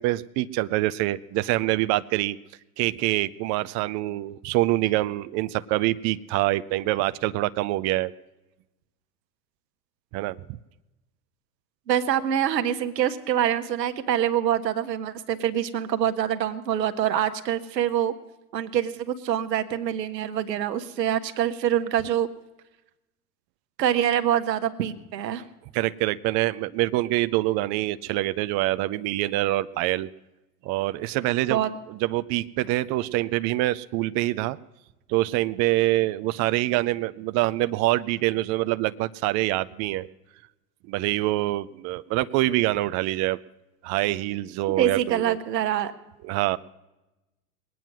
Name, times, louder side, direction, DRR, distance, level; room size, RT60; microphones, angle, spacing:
voice 1, 0.0-2.4 2.8-8.1 10.1-10.4 25.7-30.1 30.6-34.6 35.1-40.1 40.9-43.4 43.8-45.4 46.2-46.6, right 17 dB, 35° right, 14 dB, 0.4 m, -25 dB
voice 2, 11.9-18.1 18.5-22.3 23.8-25.4 31.5-31.7 44.8-45.9, right 10 dB, 85° right, 9 dB, 1.2 m, -25 dB
20.0 x 9.3 x 6.1 m, 1.0 s
hypercardioid pair, 100°, 48 cm